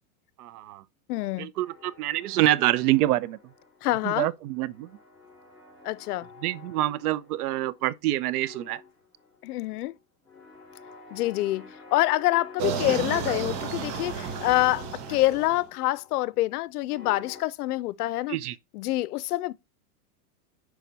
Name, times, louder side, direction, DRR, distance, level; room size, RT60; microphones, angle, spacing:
voice 1, 0.4-0.8 1.4-3.4 4.0-4.9 6.4-8.8 18.3-18.6, right 15 dB, 75° right, 0.7 m, -26 dB
voice 2, 1.1-1.5 3.8-4.3 5.8-6.3 9.4-9.9 11.1-18.4 18.7-19.5, left 17 dB, 80° left, 0.6 m, -26 dB
sound 1, 1.6-4.1 4.4-8.0 8.3-17.4, left 4 dB, ahead, 3.0 m, -49 dB
sound 2, 12.6-15.7, right 7 dB, 35° right, 1.1 m, -32 dB
5.7 x 4.8 x 4.0 m
supercardioid pair, 145°, 45 cm